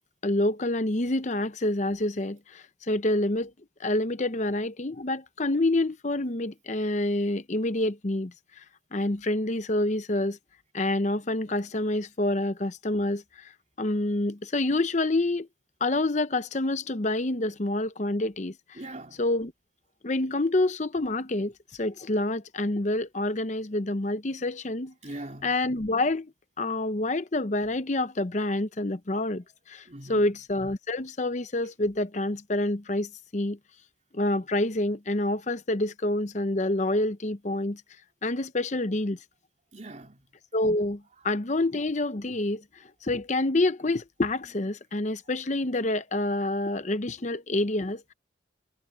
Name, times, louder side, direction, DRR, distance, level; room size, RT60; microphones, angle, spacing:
voice 1, 0.2-3.5 3.8-8.6 8.9-10.4 10.7-13.5 13.8-15.5 15.8-18.8 19.2-19.5 20.0-21.5 21.8-24.9 25.4-26.3 26.6-33.6 34.1-37.8 38.2-39.2 40.5-42.6 43.0-48.1, left 2 dB, 35° left, 0.8 m, -27 dB
voice 2, 18.8-19.2 25.0-25.5 29.9-30.2 39.7-40.2, right 1 dB, 35° right, 3.2 m, -41 dB
head